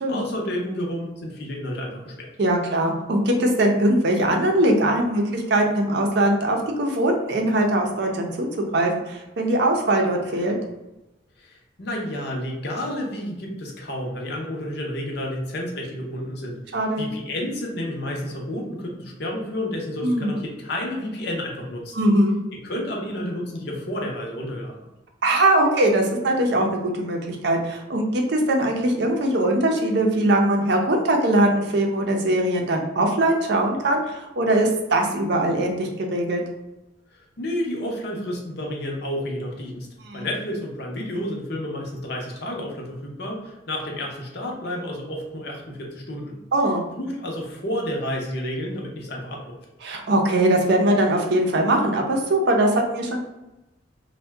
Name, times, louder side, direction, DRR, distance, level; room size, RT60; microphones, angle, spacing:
voice 1, 0.1-2.3 11.4-21.9 22.6-24.8 37.1-39.9 40.1-46.4 47.0-49.6, left 1 dB, 55° left, 0 dB, 0.6 m, -30 dB
voice 2, 2.4-8.5 8.7-10.6 16.7-17.1 20.0-20.4 21.9-22.4 25.2-36.4 40.1-40.2 46.5-46.9 49.8-53.2, right 1 dB, 60° right, 2 dB, 0.5 m, -21 dB
2.6 x 2.2 x 3.3 m, 0.97 s
head